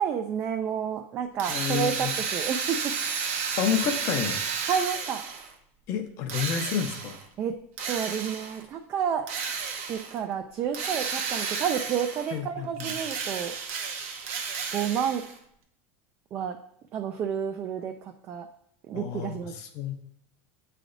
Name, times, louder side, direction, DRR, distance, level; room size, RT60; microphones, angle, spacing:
voice 1, 0.0-2.9 4.7-5.2 7.4-7.5 7.9-9.3 9.9-13.5 14.7-15.2 16.3-16.6 16.9-17.9 18.3-18.5 18.9-19.5, right 8 dB, 30° right, 5 dB, 0.4 m, -30 dB
Drill, 1.4-5.5 6.3-7.2 7.8-8.6 9.3-10.2 10.7-12.4 12.8-15.4, right 6 dB, 70° right, 1.0 m, -32 dB
voice 2, 1.5-2.1 3.6-4.4 5.9-7.2 12.3-13.0 18.9-19.9, left 8 dB, 45° left, 4 dB, 0.7 m, -30 dB
8.5 x 3.3 x 3.8 m, 0.71 s
supercardioid pair, 160°, 7 cm